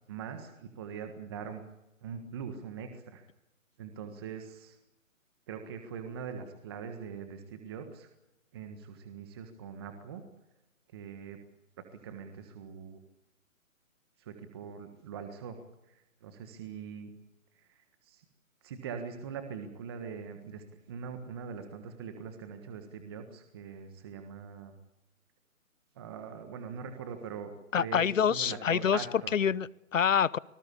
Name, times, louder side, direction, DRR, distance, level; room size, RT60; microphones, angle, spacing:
voice 1, 0.1-1.6 2.0-3.2 3.8-4.8 5.5-8.1 8.5-10.2 10.9-11.4 11.8-13.0 14.2-15.6 15.9-17.1 17.6-18.2 18.6-24.7 25.9-29.4, right 6 dB, 20° right, 7 dB, 1.5 m, -42 dB
voice 2, 27.7-29.0 29.3-30.4, left 8 dB, 65° left, 22 dB, 1.0 m, -26 dB
26.0 x 19.5 x 8.4 m, 0.93 s
hypercardioid pair, 170°, 41 cm